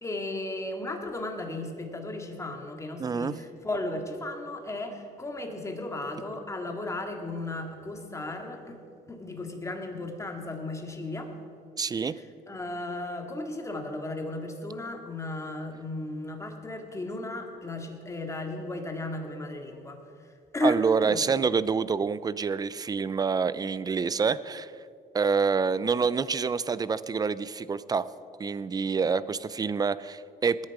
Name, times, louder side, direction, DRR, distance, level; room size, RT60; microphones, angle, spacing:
voice 1, 0.0-8.8 9.1-11.3 12.1-21.2, left 2 dB, 15° left, 3 dB, 2.1 m, -35 dB
voice 2, 3.0-3.3 11.8-12.2 20.6-24.7 25.1-28.1 28.4-30.7, right 5 dB, 25° right, 17 dB, 0.4 m, -27 dB
20.0 x 10.5 x 4.9 m, 2.4 s
cardioid pair, 110°, 17 cm